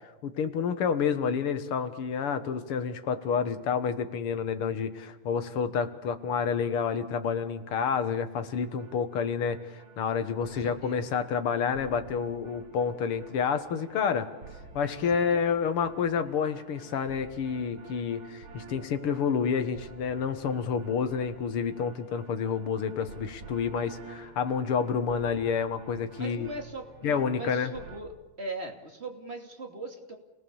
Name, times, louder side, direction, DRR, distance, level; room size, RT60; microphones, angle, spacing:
voice 1, 0.2-14.3 14.8-26.5 27.0-27.7, left 6 dB, 80° left, 9 dB, 2.3 m, -29 dB
sound 1, 8.6-28.0, right 3 dB, 70° right, 3.3 m, -50 dB
voice 2, 10.4-11.0 15.1-15.7 26.1-28.1 28.4-30.2, right 2 dB, 30° right, 2 dB, 2.9 m, -40 dB
29.0 x 18.5 x 7.2 m, 1.1 s
omnidirectional pair, 2.4 m